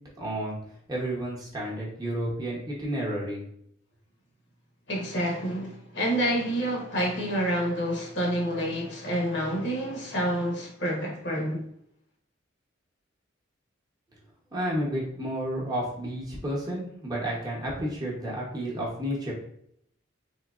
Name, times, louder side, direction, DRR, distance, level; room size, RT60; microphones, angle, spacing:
voice 1, 0.2-0.6 0.9-3.4 14.5-19.3, right 1 dB, 20° right, 0.8 m, -31 dB
voice 2, 4.9-11.6, equal, 60° left, 1.0 m, -28 dB
3.7 x 2.8 x 2.4 m
head